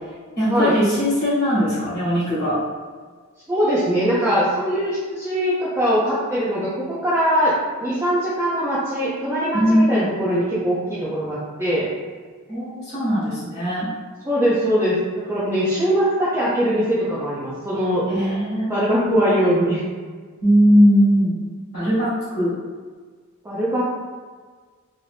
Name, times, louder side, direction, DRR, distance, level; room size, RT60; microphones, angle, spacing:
voice 1, 0.4-2.6 9.5-10.1 12.5-13.9 18.1-19.2 20.4-21.4 21.7-22.5, equal, 45° left, -11 dB, 1.1 m, -19 dB
voice 2, 3.5-7.5 7.8-11.9 14.2-15.0 15.3-18.0 18.7-19.8 23.4-23.8, equal, 10° right, -10 dB, 0.5 m, -21 dB
2.6 x 2.6 x 3.3 m, 1.5 s
head